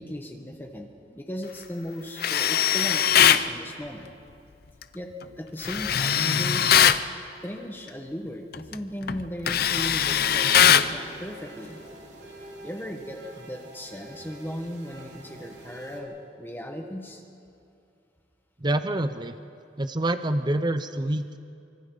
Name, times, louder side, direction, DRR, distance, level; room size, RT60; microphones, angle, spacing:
voice 1, 0.0-4.1 4.9-6.9 7.4-11.8 12.6-17.2, equal, 10° left, 3 dB, 1.6 m, -36 dB
Tools, 2.2-3.5 5.6-7.0 8.5-8.7 9.1-10.9, left 9 dB, 60° left, 0.6 m, -20 dB
sound 1, 10.3-16.0, right 1 dB, 80° right, 3.6 m, -46 dB
voice 2, 18.6-19.3 19.8-21.4, right 1 dB, 25° right, 9 dB, 0.7 m, -26 dB
27.5 x 25.0 x 4.1 m, 2.5 s
head